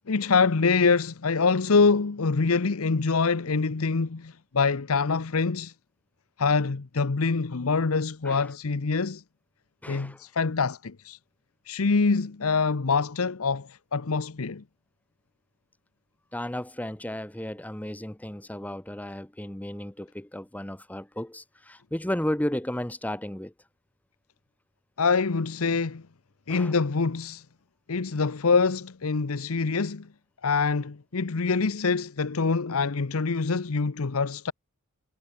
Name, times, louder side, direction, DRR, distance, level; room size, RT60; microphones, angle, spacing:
voice 1, 0.1-5.7 6.4-9.2 9.9-11.2 11.7-14.6 25.0-26.0 26.5-27.4 27.9-30.1 30.4-34.5, left 4 dB, 80° left, 0.8 m, -25 dB
voice 2, 9.8-10.2 16.3-23.5 26.5-26.8, left 1 dB, 5° left, 1.0 m, -34 dB
head